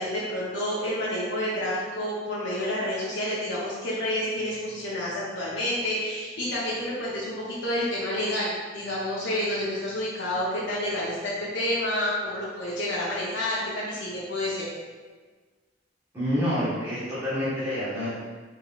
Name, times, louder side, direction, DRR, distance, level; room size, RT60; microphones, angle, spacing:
voice 1, 0.0-14.7, left 1 dB, 80° left, -8 dB, 0.7 m, -29 dB
voice 2, 16.1-18.1, equal, 15° right, -13 dB, 1.2 m, -27 dB
3.7 x 3.5 x 2.4 m, 1.4 s
head